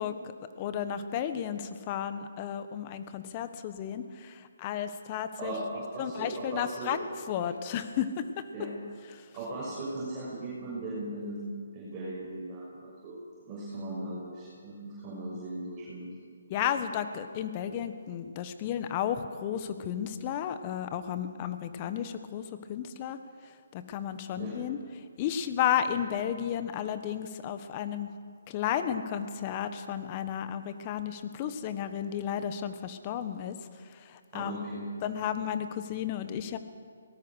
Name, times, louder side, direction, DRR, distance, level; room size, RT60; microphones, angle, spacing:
voice 1, 0.0-5.5 6.0-8.7 9.1-9.3 16.5-23.2 23.7-24.8 25.2-28.1 28.5-33.6 33.9-34.6 35.0-36.6, left 9 dB, 30° left, 10 dB, 1.4 m, -33 dB
voice 2, 5.4-7.0 8.5-8.7 9.3-13.2 13.4-16.1 24.4-24.5 34.3-34.9, right 2 dB, 25° right, -8 dB, 6.5 m, -38 dB
22.5 x 19.0 x 6.5 m, 2.1 s
hypercardioid pair, 145°, 0 cm